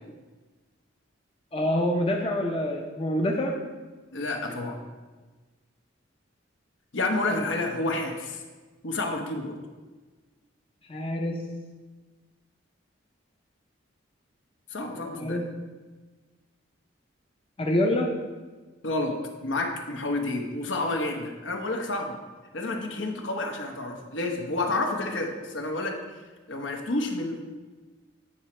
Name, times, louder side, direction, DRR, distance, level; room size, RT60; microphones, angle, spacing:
voice 1, 1.5-3.6 10.9-11.4 15.2-15.4 17.6-18.1, left 1 dB, 30° left, 1 dB, 0.6 m, -26 dB
voice 2, 4.1-4.8 6.9-8.4 8.8-9.6 14.7-15.4 18.8-19.2 19.4-22.2 22.5-26.0 26.5-27.4, left 2 dB, 70° left, 3 dB, 1.0 m, -29 dB
9.0 x 5.0 x 4.3 m, 1.3 s
head